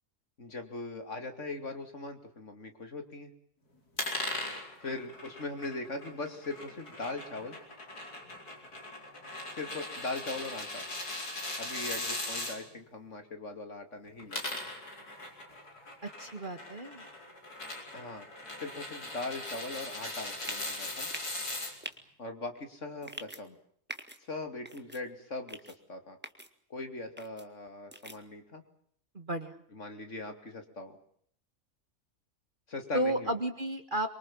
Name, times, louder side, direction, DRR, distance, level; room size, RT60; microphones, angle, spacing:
voice 1, 0.4-3.3 4.8-7.6 9.4-10.9 11.6-14.4 17.9-18.3 18.5-21.1 22.2-23.6 24.3-25.6 25.9-26.2 26.7-28.6 29.7-31.0 32.7-33.4, left 2 dB, 45° left, 6 dB, 3.0 m, -40 dB
sound 1, 4.0-12.6 14.1-21.7, left 2 dB, 70° left, 5.3 m, -39 dB
voice 2, 16.0-17.0 29.2-29.6 32.9-34.1, right 1 dB, 30° right, 8 dB, 1.8 m, -33 dB
sound 2, 20.4-20.7 21.1-21.3 21.8-21.9 23.0-23.4 23.9-24.2 24.6-25.0 25.5-25.7 26.2-26.5 27.2-27.4 27.9-28.2, right 1 dB, 5° right, 1.8 m, -43 dB
25.0 x 24.0 x 7.4 m, 0.65 s
omnidirectional pair, 1.7 m